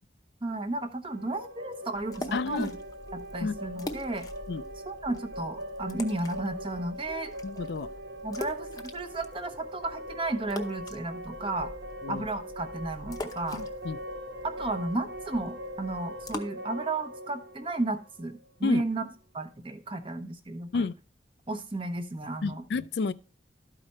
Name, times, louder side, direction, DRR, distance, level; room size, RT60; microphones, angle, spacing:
voice 1, 0.4-2.7 3.1-4.2 4.9-7.3 8.2-11.7 12.1-13.6 14.4-19.0 19.3-20.9 21.5-22.6, right 2 dB, 30° right, 0.9 m, -33 dB
sound 1, 1.1-18.8, equal, 70° right, 0.9 m, -41 dB
sound 2, 1.9-16.4, left 2 dB, 20° left, 0.7 m, -44 dB
voice 2, 2.3-2.7 3.4-3.6 4.5-4.6 7.4-7.9 12.0-12.3 13.5-14.0 18.6-18.8 20.7-20.9 22.4-23.1, left 4 dB, 65° left, 0.4 m, -30 dB
12.5 x 4.9 x 4.2 m
head